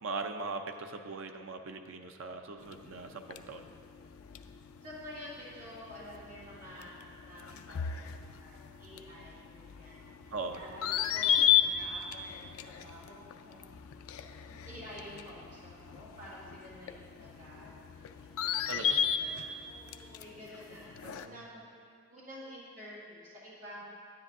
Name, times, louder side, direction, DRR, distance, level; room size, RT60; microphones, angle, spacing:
voice 1, 0.0-3.7 10.3-10.6 18.7-19.0 21.0-21.4, right 3 dB, 70° right, 5 dB, 0.6 m, -40 dB
sound 1, 2.6-21.3, left 9 dB, 75° left, 0.4 m, -35 dB
voice 2, 4.8-10.0 10.5-13.7 14.5-21.6 22.1-23.8, equal, 35° right, -9 dB, 2.2 m, -50 dB
9.9 x 9.7 x 2.6 m, 2.3 s
head